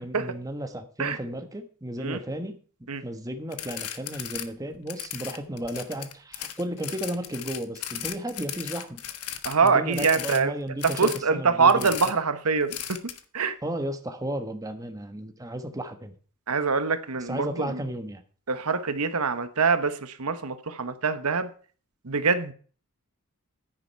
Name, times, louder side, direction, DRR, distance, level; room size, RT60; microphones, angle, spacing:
voice 1, 0.0-9.0 9.6-11.9 13.6-16.1 17.2-18.2, right 1 dB, 15° right, 1.2 m, -34 dB
sound 1, 3.5-4.5 4.7-10.4 10.8-11.2 11.7-12.1 12.7-13.2, left 11 dB, 85° left, 1.2 m, -36 dB
voice 2, 9.4-10.5 10.8-13.0 13.3-13.5 16.5-17.8 18.5-21.5 22.0-22.5, right 5 dB, 75° right, 1.1 m, -24 dB
10.0 x 9.8 x 4.6 m
head